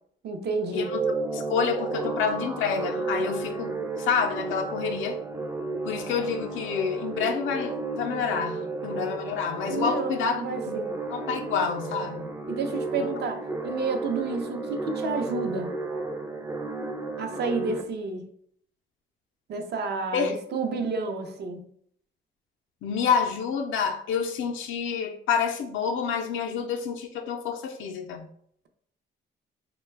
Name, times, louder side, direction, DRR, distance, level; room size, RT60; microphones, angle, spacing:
voice 1, 0.2-0.9 9.7-10.9 12.5-15.7 17.2-18.3 19.5-21.6, right 4 dB, 55° right, 5 dB, 0.6 m, -30 dB
sound 1, 0.7-17.8, right 3 dB, 15° right, 0.3 m, -33 dB
voice 2, 1.3-5.2 5.8-10.8 11.1-12.3 20.1-20.3 22.8-28.3, left 6 dB, 80° left, 3 dB, 0.5 m, -28 dB
3.1 x 2.2 x 3.3 m, 0.65 s
cardioid pair, 90°, 20 cm